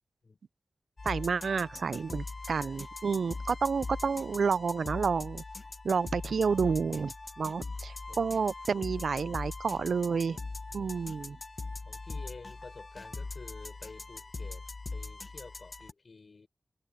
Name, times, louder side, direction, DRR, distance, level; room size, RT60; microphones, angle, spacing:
sound 1, 1.0-15.9, left 3 dB, 45° left, 1.0 m, -41 dB
voice 1, 1.0-5.4 5.8-10.4 10.7-11.4, right 5 dB, 85° right, 0.4 m, -30 dB
voice 2, 11.9-14.7 14.9-16.5, left 4 dB, 60° left, 5.7 m, -50 dB
wide cardioid pair, 75°, 0 cm